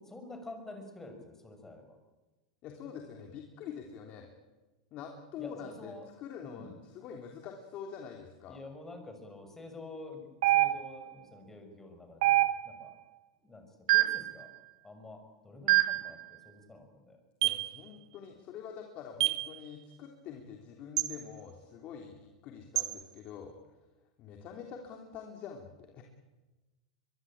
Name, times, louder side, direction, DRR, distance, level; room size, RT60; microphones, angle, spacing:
voice 1, 0.0-2.0 5.4-6.1 6.4-6.9 8.5-12.4 12.6-12.9 13.4-14.5 14.8-17.2, left 2 dB, 10° left, 5 dB, 6.4 m, -48 dB
voice 2, 2.6-4.3 4.9-8.6 17.4-23.5 24.2-26.0, left 7 dB, 45° left, 2 dB, 3.4 m, -45 dB
sound 1, 10.4-11.1 12.2-12.9 13.9-14.3 15.7-16.1 17.4-17.7 19.2-19.5 21.0-21.2 22.8-22.9, right 16 dB, 75° right, 1.2 m, -26 dB
23.0 x 22.5 x 8.9 m, 1.2 s
hypercardioid pair, 120°, 3 cm